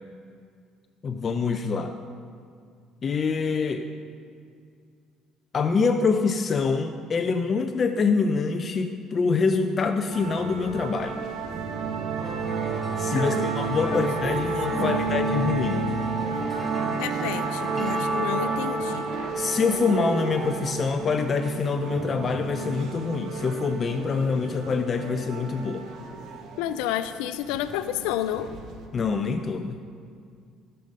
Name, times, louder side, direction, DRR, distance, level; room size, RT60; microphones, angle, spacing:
voice 1, 1.0-2.0 3.0-3.9 5.5-11.2 13.0-15.9 19.4-25.9 28.9-29.8, left 4 dB, 40° left, 7 dB, 0.6 m, -25 dB
sound 1, 10.1-28.9, right 4 dB, 65° right, 1.2 m, -31 dB
sound 2, 12.2-20.8, right 2 dB, 20° right, 1.2 m, -35 dB
voice 2, 13.1-13.5 13.9-14.1 14.7-15.2 17.0-19.1 26.6-28.5, left 12 dB, 90° left, 11 dB, 0.4 m, -30 dB
15.5 x 6.9 x 5.2 m, 2.2 s
cardioid pair, 95°, 0 cm